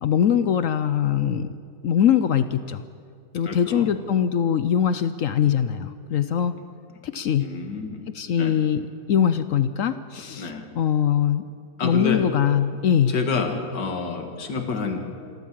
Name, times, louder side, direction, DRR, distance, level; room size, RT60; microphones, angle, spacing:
voice 1, 0.0-1.5 1.8-2.8 3.3-6.5 7.0-7.5 8.1-8.8 9.1-11.4 11.8-13.1, left 9 dB, 65° left, 12 dB, 0.9 m, -22 dB
voice 2, 3.4-3.9 7.4-8.1 8.4-8.5 10.4-10.7 11.8-12.3 13.1-15.0, left 4 dB, 90° left, 5 dB, 2.4 m, -28 dB
26.5 x 13.5 x 7.5 m, 2.2 s
omnidirectional pair, 1.8 m